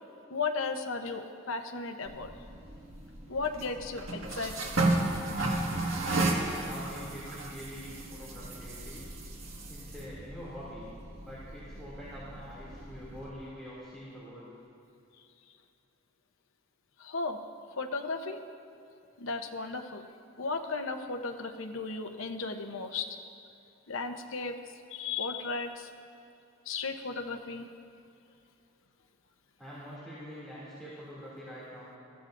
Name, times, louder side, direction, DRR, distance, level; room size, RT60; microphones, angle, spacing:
voice 1, 0.3-2.3 3.3-4.8 17.0-17.4 17.8-18.4 19.2-20.1 20.4-23.2 23.9-24.6 24.9-25.9 26.7-27.7, left 4 dB, 80° left, 5 dB, 0.9 m, -35 dB
sound 1, 2.0-13.3, right 2 dB, 85° right, 1.7 m, -34 dB
voice 2, 6.3-9.0 9.7-10.9 11.2-14.5 29.6-31.9, equal, 5° left, -10 dB, 2.7 m, -45 dB
22.0 x 14.0 x 2.6 m, 2.6 s
head